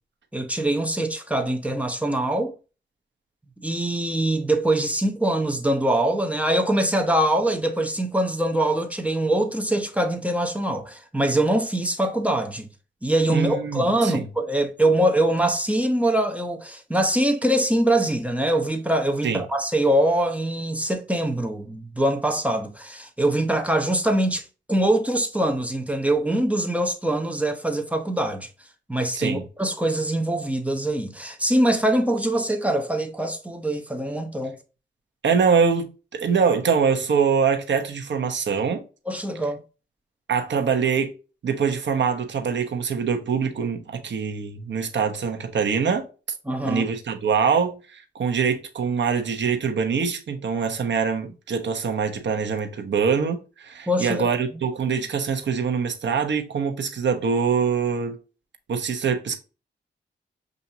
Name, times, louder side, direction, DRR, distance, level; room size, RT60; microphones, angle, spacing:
voice 1, 0.3-2.5 3.6-12.7 13.0-28.5 28.9-34.6 39.1-39.6 46.5-46.9 53.9-54.3, right 1 dB, 5° right, 0.8 m, -23 dB
voice 2, 13.3-14.3 19.2-19.4 29.1-29.5 35.2-38.8 40.3-41.1 41.4-46.0 46.6-58.2 58.7-59.4, right 6 dB, 70° right, 1.0 m, -24 dB
7.1 x 2.7 x 2.7 m
cardioid pair, 90°, 20 cm